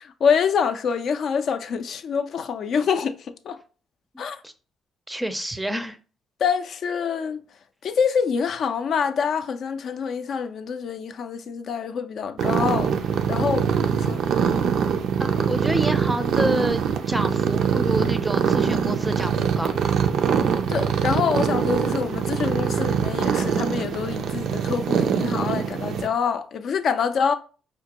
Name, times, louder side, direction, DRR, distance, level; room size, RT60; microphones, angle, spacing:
voice 1, 0.0-3.6 4.2-4.4 6.4-7.4 7.8-14.2 20.7-27.3, left 6 dB, 60° left, 0.3 m, -26 dB
voice 2, 5.1-6.0 15.2-19.7, right 1 dB, 10° right, 0.4 m, -28 dB
sound 1, 12.4-26.1, right 7 dB, 75° right, 0.3 m, -23 dB
4.9 x 2.2 x 2.8 m
cardioid pair, 90°, 0 cm